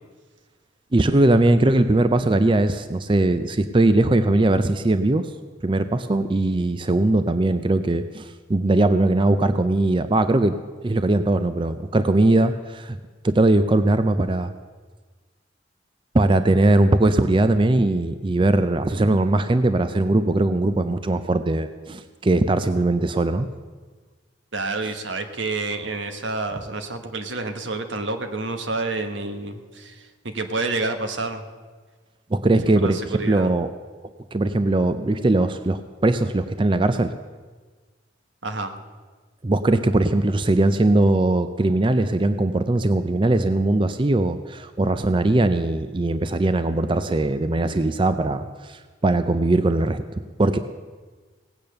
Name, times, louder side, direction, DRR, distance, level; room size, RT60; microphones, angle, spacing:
voice 1, 0.9-5.3 5.6-13.0 13.2-14.5 16.1-23.5 32.3-33.7 34.3-37.1 39.4-50.6, right 2 dB, 25° right, 11 dB, 0.5 m, -20 dB
voice 2, 24.5-31.4 32.8-33.5 38.4-38.7, right 3 dB, 85° right, 7 dB, 1.3 m, -29 dB
17.5 x 8.7 x 6.6 m, 1.4 s
head